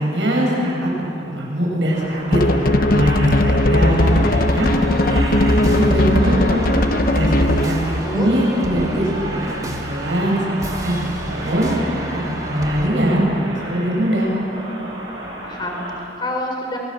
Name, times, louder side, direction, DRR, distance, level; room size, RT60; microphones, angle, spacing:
voice 1, 0.0-2.4 2.9-4.7 5.1-6.6 7.1-7.8 8.1-14.3, right 1 dB, 85° right, -2 dB, 7.1 m, -22 dB
sound 1, 1.9-16.0, right 1 dB, 70° right, 7.7 m, -33 dB
sound 2, 2.3-7.8, left 1 dB, 50° left, 1.0 m, -17 dB
sound 3, 4.0-12.9, right 1 dB, 20° right, 2.0 m, -31 dB
voice 2, 7.5-8.3 15.1-16.8, left 1 dB, 25° left, 0 dB, 4.6 m, -29 dB
25.5 x 19.5 x 7.4 m, 2.8 s
head